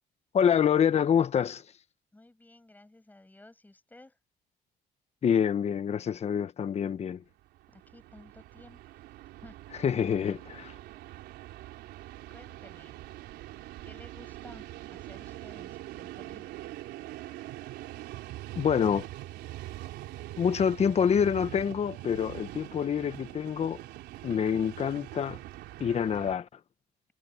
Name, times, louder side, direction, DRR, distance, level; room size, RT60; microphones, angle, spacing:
voice 1, 0.3-1.7 5.2-7.2 9.8-10.7 18.6-19.1 20.4-23.8 24.2-25.4 25.8-26.5, left 8 dB, 40° left, 1.1 m, -26 dB
voice 2, 2.1-4.2 7.7-8.8 9.4-9.6 12.3-13.0 13.8-16.5, left 2 dB, 10° left, 6.5 m, -54 dB
Train, 7.4-26.4, right 16 dB, 85° right, 3.9 m, -43 dB
cardioid pair, 110°, 17 cm